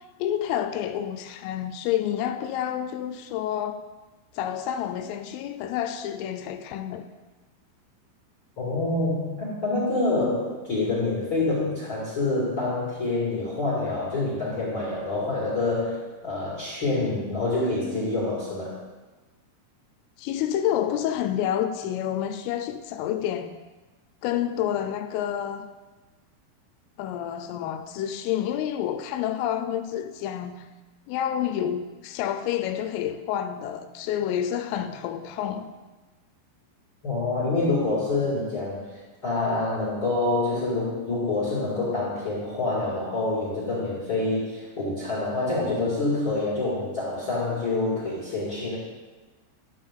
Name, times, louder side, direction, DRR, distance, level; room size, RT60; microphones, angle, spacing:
voice 1, 0.2-3.8 4.4-7.1 20.2-23.6 24.2-25.7 27.0-30.7 31.1-35.7, left 10 dB, 85° left, 3.1 m, -29 dB
voice 2, 8.6-18.8 37.0-38.8 39.2-48.8, left 2 dB, 45° left, 1.7 m, -26 dB
12.5 x 7.1 x 3.7 m
omnidirectional pair, 5.9 m